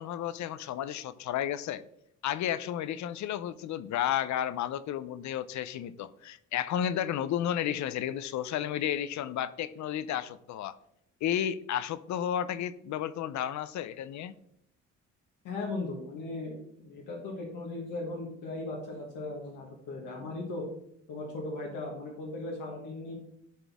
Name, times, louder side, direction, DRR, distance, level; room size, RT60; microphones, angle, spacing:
voice 1, 0.0-1.8 2.2-10.8 11.2-14.3, left 10 dB, 70° left, 15 dB, 0.6 m, -32 dB
voice 2, 15.4-20.6 21.1-23.2, left 2 dB, 90° left, -2 dB, 1.5 m, -37 dB
11.5 x 4.1 x 3.5 m, 0.73 s
cardioid pair, 90°, 30 cm